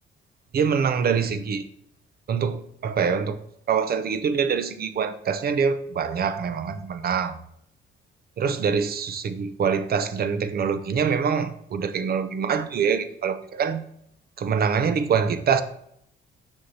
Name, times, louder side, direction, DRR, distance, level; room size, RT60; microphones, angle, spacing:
voice 1, 0.5-1.6 2.3-3.4 3.7-7.4 8.4-13.8 14.4-15.6, right 6 dB, 50° right, 11 dB, 0.6 m, -24 dB
6.4 x 6.3 x 2.8 m, 0.71 s
cardioid pair, 90°, 20 cm